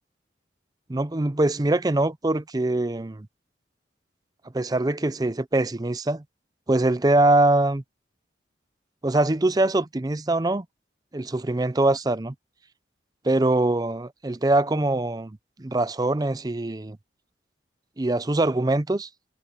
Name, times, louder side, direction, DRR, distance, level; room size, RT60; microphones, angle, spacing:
voice 1, 0.9-3.3 4.5-6.2 6.7-7.8 9.0-10.7 11.1-12.3 13.2-17.0 18.0-19.1, right 2 dB, 20° right, 0.5 m, -23 dB
head